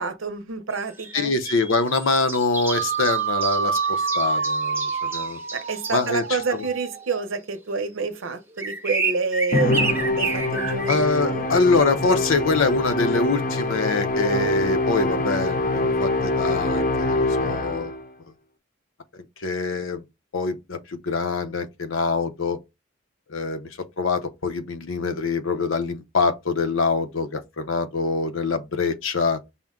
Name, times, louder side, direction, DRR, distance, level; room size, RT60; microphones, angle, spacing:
voice 1, 0.0-1.3 5.5-11.5, right 4 dB, 90° right, 0.7 m, -28 dB
sound 1, 0.8-6.9 7.8-7.9 8.6-11.1, right 4 dB, 10° right, 0.7 m, -31 dB
voice 2, 1.1-5.4 5.9-6.6 10.9-17.9 19.4-20.0 20.3-22.6 23.3-23.7 24.0-29.4, left 4 dB, 80° left, 0.7 m, -24 dB
sound 2, 2.7-7.2, right 6 dB, 45° right, 0.3 m, -27 dB
Musical instrument, 9.5-18.1, left 2 dB, 40° left, 0.6 m, -24 dB
5.6 x 2.2 x 3.6 m
head